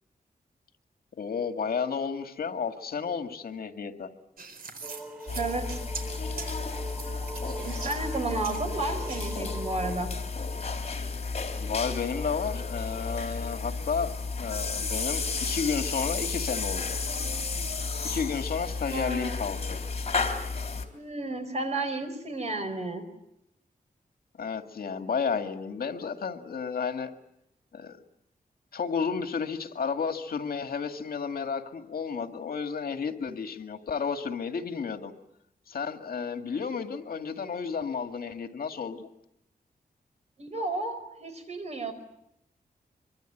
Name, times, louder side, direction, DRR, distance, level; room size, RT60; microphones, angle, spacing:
voice 1, 1.2-4.1 11.6-14.1 14.4-17.0 18.0-19.8 24.4-27.1 27.7-28.0 28.7-35.1 35.7-39.1, left 6 dB, 80° left, 7 dB, 2.0 m, -32 dB
sound 1, 4.4-9.4, right 4 dB, 75° right, 4.3 m, -42 dB
sound 2, 4.8-10.0, right 2 dB, 5° right, 7.2 m, -41 dB
sound 3, 5.3-20.9, left 4 dB, 45° left, 3.7 m, -32 dB
voice 2, 5.4-5.8 7.4-10.1 18.9-19.4 20.9-23.0 40.4-41.9, right 2 dB, 45° right, 8 dB, 4.7 m, -32 dB
24.5 x 24.5 x 9.1 m, 0.82 s
wide cardioid pair, 125°, 15 cm